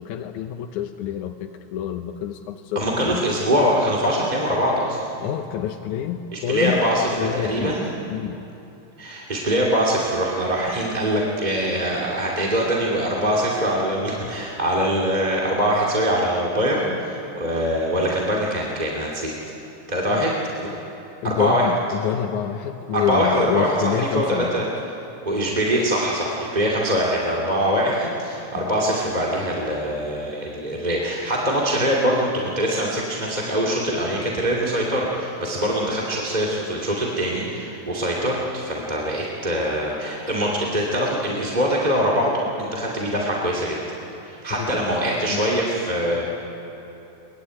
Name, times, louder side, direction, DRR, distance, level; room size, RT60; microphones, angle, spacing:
voice 1, 0.0-3.3 5.2-6.8 7.1-7.8 8.1-8.4 20.1-20.2 21.2-24.6 28.6-28.7 44.6-44.7 45.3-45.4, left 10 dB, 85° left, 5 dB, 2.3 m, -27 dB
voice 2, 2.7-5.0 6.3-7.9 9.0-19.3 19.9-20.7 21.2-21.6 22.9-24.7 25.3-43.8 44.2-46.2, equal, 15° right, -3 dB, 2.2 m, -23 dB
23.0 x 20.0 x 9.6 m, 2.9 s
omnidirectional pair, 3.4 m